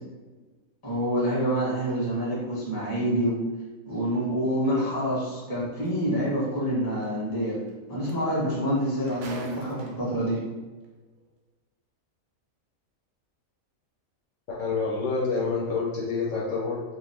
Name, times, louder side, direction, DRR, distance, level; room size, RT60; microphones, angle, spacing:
voice 1, 0.8-3.4 3.9-7.6 7.9-10.4, equal, 20° left, -6 dB, 0.7 m, -27 dB
sound 1, 5.9-6.0 7.7-7.8 8.0-10.3 11.2-11.3, right 3 dB, 90° right, 1.1 m, -42 dB
voice 2, 14.5-16.8, left 4 dB, 70° left, -4 dB, 0.8 m, -27 dB
2.5 x 2.5 x 3.4 m, 1.3 s
omnidirectional pair, 1.4 m